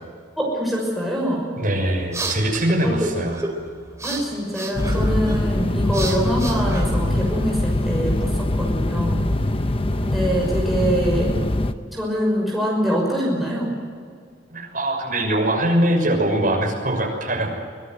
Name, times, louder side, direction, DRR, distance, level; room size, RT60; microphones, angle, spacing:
voice 1, 0.4-1.5 2.8-3.0 4.0-9.3 10.0-11.3 11.9-13.7, equal, ahead, -3 dB, 6.1 m, -24 dB
sound 1, 1.6-7.5, right 1 dB, 15° right, 3.6 m, -32 dB
voice 2, 1.6-3.4 14.5-17.5, right 1 dB, 45° right, 1 dB, 6.4 m, -22 dB
sound 2, 4.8-11.7, left 1 dB, 30° left, 0.9 m, -22 dB
24.5 x 19.0 x 7.8 m, 2.1 s
head